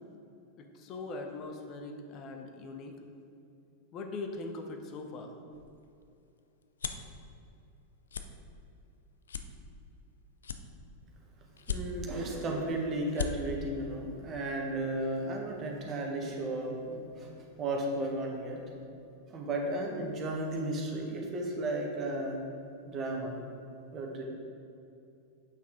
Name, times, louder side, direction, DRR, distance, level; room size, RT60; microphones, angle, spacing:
voice 1, 0.6-2.9 3.9-5.3, left 3 dB, 35° left, 4 dB, 0.9 m, -41 dB
sound 1, 5.5-7.1 7.6-7.8 8.1-8.3 8.8-8.9 9.3-10.1 10.4-11.1 11.6-12.2 12.7-12.8 13.0-13.3, left 7 dB, 70° left, 0.4 m, -37 dB
voice 2, 11.7-17.3 17.6-18.6 19.3-22.4 22.9-23.4 23.9-24.2, right 1 dB, 30° right, 0 dB, 1.5 m, -34 dB
8.5 x 5.8 x 3.8 m, 2.7 s
figure-of-eight pair, 90°, 0 cm